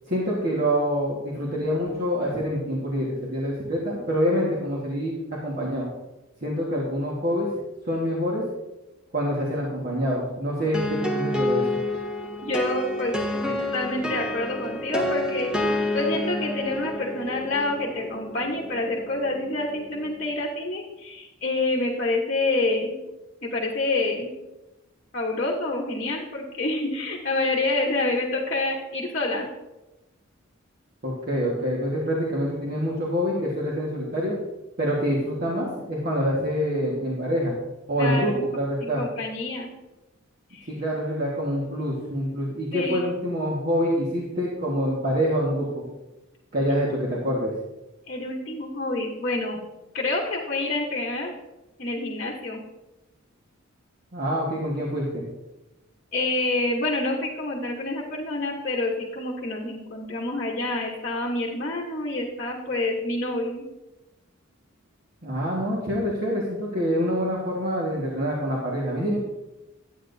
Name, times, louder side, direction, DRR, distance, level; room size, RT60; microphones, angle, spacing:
voice 1, 0.1-5.9 6.4-7.5 7.8-8.4 9.1-11.8 31.0-34.4 34.8-37.6 37.9-39.0 40.7-45.8 46.5-47.5 54.1-55.2 65.2-69.2, equal, 45° right, -4 dB, 1.5 m, -26 dB
sound 1, 10.7-20.3, left 1 dB, 5° right, 0.9 m, -29 dB
voice 2, 12.4-23.0 23.4-24.4 25.1-29.5 38.0-38.5 38.8-39.7 40.5-40.7 42.7-43.0 48.1-49.6 49.9-51.3 51.8-52.6 56.1-63.6, left 2 dB, 40° left, -1 dB, 1.0 m, -27 dB
11.0 x 8.5 x 2.7 m, 1.0 s
head